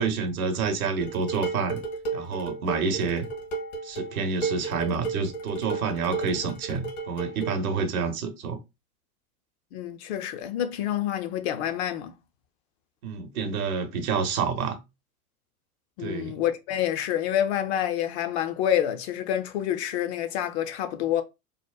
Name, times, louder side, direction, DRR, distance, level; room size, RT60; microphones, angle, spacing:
voice 1, 0.0-1.8 2.1-3.3 3.8-8.6 13.0-14.8 16.0-16.3, right 5 dB, 70° right, 0.7 m, -28 dB
Dishes pots and pans, 1.0-7.6, right 4 dB, 70° left, 1.1 m, -34 dB
voice 2, 9.7-12.1 16.0-21.2, left 10 dB, 50° left, 0.4 m, -27 dB
2.8 x 2.0 x 2.2 m
figure-of-eight pair, 85°, 44 cm